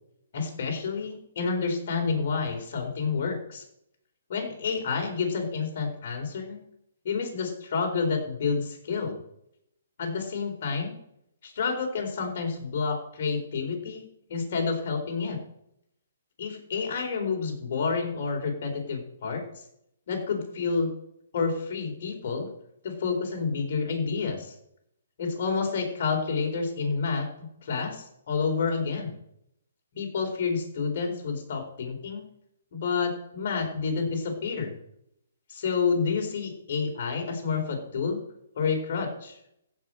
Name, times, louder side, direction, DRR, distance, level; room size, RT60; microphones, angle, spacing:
voice 1, 0.3-3.6 4.3-6.6 7.0-9.2 10.0-11.0 11.4-14.0 14.3-15.4 16.4-19.4 20.1-20.9 21.3-22.5 22.8-24.5 25.2-27.3 27.6-29.1 29.9-32.2 32.7-34.7 35.5-38.2 38.6-39.4, left 5 dB, 50° left, 1 dB, 4.4 m, -29 dB
15.5 x 6.1 x 7.9 m, 0.77 s
hypercardioid pair, 160°, 0 cm